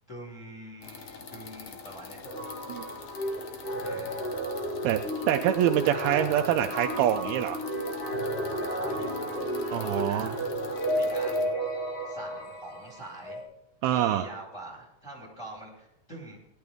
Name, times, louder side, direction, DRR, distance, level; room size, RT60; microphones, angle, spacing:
voice 1, 0.1-2.2 3.8-4.2 8.5-11.5 12.0-13.4 13.8-16.4, right 1 dB, 20° left, -2 dB, 2.9 m, -45 dB
sound 1, 0.8-11.4, left 5 dB, 85° left, 1.2 m, -45 dB
sound 2, 2.2-13.4, equal, 55° left, 3.8 m, -32 dB
voice 2, 5.3-7.6 9.7-10.3 13.8-14.3, right 11 dB, 80° right, 5 dB, 2.4 m, -25 dB
16.5 x 10.5 x 3.5 m, 0.85 s
omnidirectional pair, 4.5 m